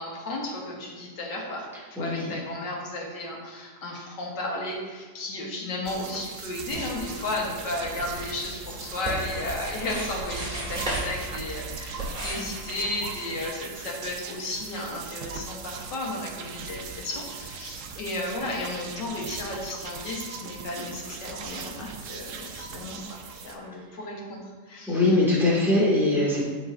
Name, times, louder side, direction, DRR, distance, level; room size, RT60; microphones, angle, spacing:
voice 1, 0.0-1.7 2.0-24.4 24.7-25.0, left 2 dB, 85° left, -1 dB, 1.9 m, -34 dB
voice 2, 2.0-2.4 24.9-26.4, left 2 dB, ahead, -7 dB, 2.0 m, -22 dB
sound 1, 5.8-23.5, right 6 dB, 65° right, 0.8 m, -40 dB
sound 2, 6.6-12.7, right 1 dB, 30° right, 1.9 m, -36 dB
12.0 x 4.7 x 2.6 m, 1.4 s
omnidirectional pair, 1.8 m